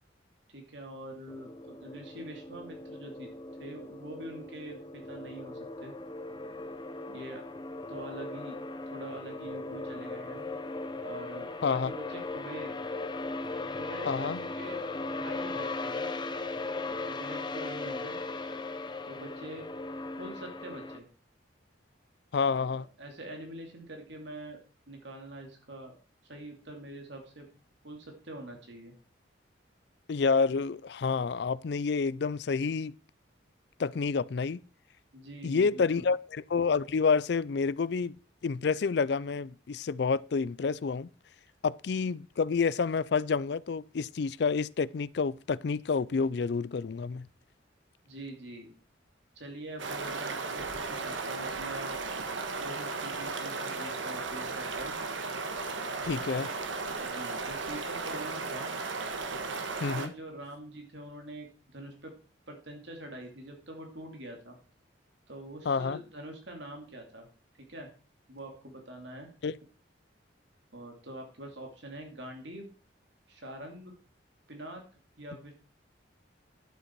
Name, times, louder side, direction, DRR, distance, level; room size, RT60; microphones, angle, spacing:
voice 1, 0.5-3.3 3.6-5.9 7.1-7.4 7.9-8.6 8.9-10.5 11.0-12.8 13.6-16.1 17.0-18.1 19.0-19.7 20.2-21.1 22.5-24.6 24.9-25.9 26.3-27.5 27.8-28.9 35.1-36.1 48.0-48.7 49.3-52.0 52.6-55.0 57.0-58.7 59.8-62.1 62.5-64.5 65.3-67.3 67.7-67.9 68.3-69.3 70.7-72.7 73.3-73.9 74.5-74.8 75.2-75.5, right 1 dB, 65° right, 2.7 m, -45 dB
sound 1, 1.3-21.0, left 2 dB, 25° left, 0.7 m, -38 dB
voice 2, 14.1-14.4 22.3-22.9 30.1-32.9 33.8-34.6 35.4-38.1 38.4-41.1 41.6-47.3 56.0-56.5 59.8-60.1 65.7-66.0 69.4-69.5, left 5 dB, 60° left, 0.4 m, -29 dB
sound 2, 49.8-60.1, right 4 dB, 85° right, 1.4 m, -35 dB
11.5 x 7.8 x 4.6 m
head